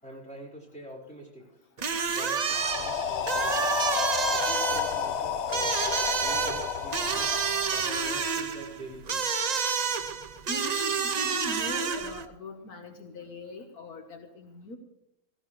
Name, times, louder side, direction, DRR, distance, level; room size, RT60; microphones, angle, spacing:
voice 1, 0.0-1.6 2.1-3.7 4.3-5.8 6.2-9.3, equal, 5° left, -5 dB, 4.5 m, -45 dB
sound 1, 1.8-12.3, right 6 dB, 45° right, 0.5 m, -29 dB
sound 2, 2.5-8.4, left 9 dB, 60° left, 0.8 m, -31 dB
voice 2, 10.5-14.8, left 3 dB, 75° left, 5 dB, 1.7 m, -41 dB
17.0 x 16.5 x 3.2 m, 0.78 s
omnidirectional pair, 1.6 m